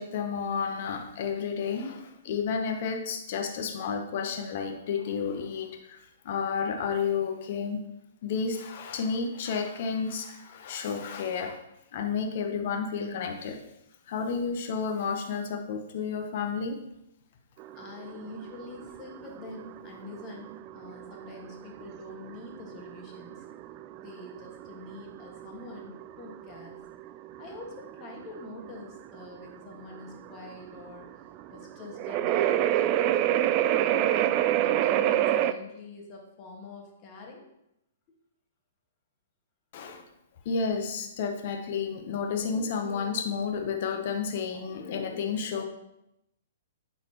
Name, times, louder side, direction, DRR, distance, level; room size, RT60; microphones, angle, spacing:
voice 1, 0.0-6.0 6.2-7.9 8.2-11.6 11.9-13.6 14.1-16.8 39.7-40.0 40.4-45.6, left 5 dB, 55° left, 4 dB, 0.9 m, -31 dB
sound 1, 17.6-35.5, right 12 dB, 35° right, 0.3 m, -28 dB
voice 2, 17.7-23.4 24.0-26.8 27.4-31.1 31.5-33.0 33.8-37.5, left 2 dB, 35° left, 0 dB, 1.6 m, -45 dB
8.8 x 4.1 x 2.9 m, 0.83 s
hypercardioid pair, 140°, 0 cm